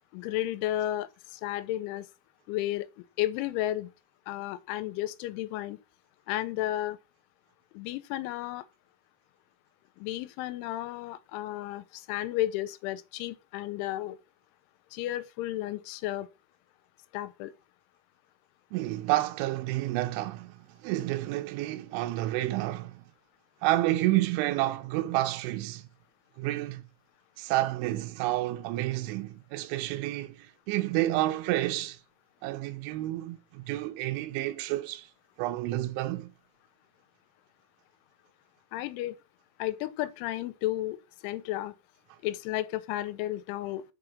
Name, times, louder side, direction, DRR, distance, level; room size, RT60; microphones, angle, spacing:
voice 1, 0.1-2.1 2.5-3.9 4.3-5.8 6.3-7.0 7.7-8.6 10.0-14.2 14.9-16.3 17.1-17.5 38.7-39.2 39.6-41.0 41.2-41.7 42.2-43.8, left 14 dB, 90° left, 3.1 m, -33 dB
voice 2, 18.7-23.1 23.6-25.8 26.4-26.8 27.4-32.0 32.4-35.1 35.4-36.3, right 16 dB, 85° right, 3.0 m, -30 dB
6.7 x 5.0 x 5.8 m
omnidirectional pair, 5.4 m